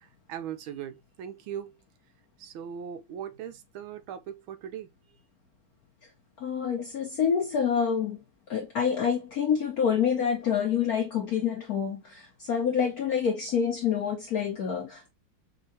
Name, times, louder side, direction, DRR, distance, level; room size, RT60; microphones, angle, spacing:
voice 1, 0.3-1.7 2.4-4.9, right 9 dB, 75° right, 1.4 m, -39 dB
voice 2, 6.4-8.2 8.5-15.1, left 7 dB, 65° left, 0.9 m, -27 dB
5.5 x 2.5 x 2.7 m
omnidirectional pair, 2.4 m